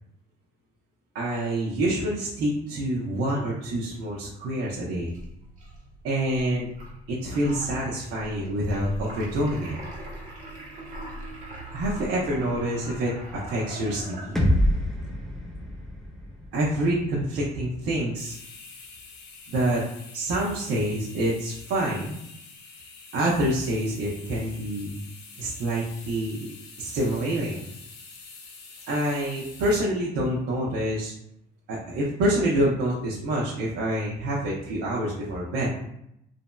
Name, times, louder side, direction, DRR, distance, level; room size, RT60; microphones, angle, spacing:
voice 1, 1.1-5.1 6.0-6.7 7.1-9.8 11.7-14.3 16.5-18.3 19.5-19.8 20.1-22.2 23.1-24.9 25.4-26.5 26.8-27.6 28.9-31.1 31.7-35.7, right 1 dB, 75° right, -5 dB, 0.7 m, -27 dB
sound 1, 5.0-14.7, right 1 dB, 50° right, 1.1 m, -41 dB
sound 2, 14.4-18.3, equal, ahead, 0.6 m, -27 dB
sound 3, 18.2-29.8, left 4 dB, 85° left, 0.7 m, -46 dB
3.0 x 2.6 x 2.2 m, 0.77 s
cardioid pair, 110°, 17 cm